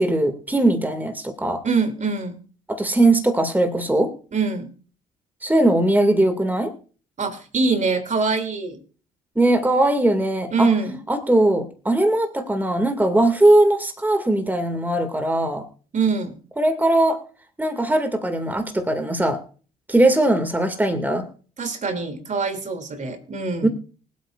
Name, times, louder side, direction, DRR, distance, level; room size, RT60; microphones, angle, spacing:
voice 1, 0.0-1.6 2.7-4.1 5.4-6.7 9.4-10.7 11.1-15.6 16.6-17.2 17.6-19.4 19.9-21.3 23.6-23.7, right 1 dB, 10° right, 6 dB, 2.2 m, -20 dB
voice 2, 1.6-2.4 4.3-4.7 7.2-8.8 10.5-11.0 15.9-16.4 21.6-23.7, right 4 dB, 45° right, 7 dB, 2.8 m, -24 dB
25.0 x 8.4 x 2.5 m, 0.39 s
hypercardioid pair, 55°, 17 cm